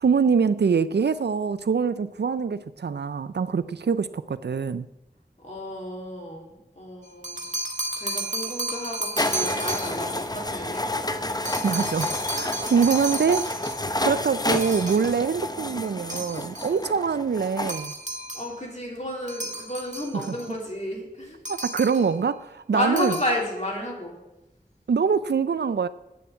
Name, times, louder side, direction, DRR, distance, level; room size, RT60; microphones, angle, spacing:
voice 1, 0.0-4.9 11.6-13.5 14.0-17.9 21.5-23.1 24.9-25.9, right 6 dB, 85° right, 14 dB, 0.4 m, -24 dB
voice 2, 5.4-7.4 7.9-10.8 18.3-21.4 22.7-24.2, left 1 dB, 45° left, -2 dB, 3.4 m, -31 dB
sound 1, 7.1-10.2 11.4-13.9 14.5-15.2 16.1-16.8 17.7-18.5 19.3-20.5 21.4-22.2 22.8-23.4, right 2 dB, 45° right, 1.3 m, -33 dB
sound 2, 9.2-17.7, left 1 dB, 25° left, 0.8 m, -30 dB
9.4 x 7.0 x 8.5 m, 0.96 s
wide cardioid pair, 50°, 17 cm